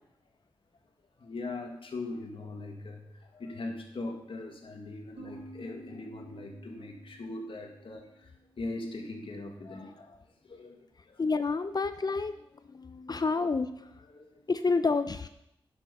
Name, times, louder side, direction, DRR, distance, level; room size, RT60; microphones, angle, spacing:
voice 1, 1.2-8.3 8.6-10.8 11.1-11.4 13.2-13.5 14.0-14.5 14.7-14.9, left 2 dB, 65° left, 3 dB, 1.8 m, -41 dB
sound 1, 5.2-8.8, right 2 dB, 80° right, 1.4 m, -52 dB
voice 2, 11.2-12.4 12.7-13.7 14.5-15.3, left 4 dB, 45° left, 11 dB, 0.6 m, -28 dB
10.5 x 6.5 x 5.5 m, 0.79 s
cardioid pair, 45°, 9 cm